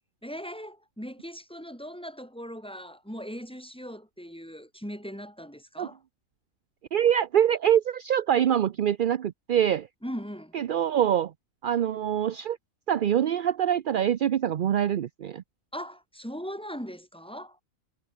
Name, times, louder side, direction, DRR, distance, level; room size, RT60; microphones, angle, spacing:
voice 1, 0.2-6.0 10.0-10.5 15.7-17.6, equal, 5° left, 6.5 m, -39 dB
voice 2, 6.9-9.9 10.5-11.3 11.6-12.6 12.9-15.4, right 9 dB, 55° right, 0.6 m, -24 dB
omnidirectional pair, 1.4 m